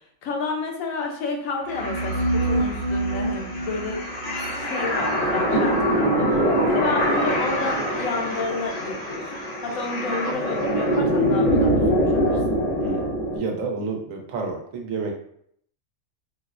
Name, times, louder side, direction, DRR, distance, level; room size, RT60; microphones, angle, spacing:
voice 1, 0.0-4.0 4.5-6.3 6.7-12.6, left 3 dB, 80° left, 2 dB, 1.1 m, -31 dB
sound 1, 1.7-13.4, equal, 45° left, 0.5 m, -23 dB
voice 2, 6.3-6.6 12.8-13.1 13.3-15.1, right 4 dB, 80° right, 2 dB, 1.1 m, -30 dB
4.3 x 2.0 x 2.4 m, 0.67 s
omnidirectional pair, 1.4 m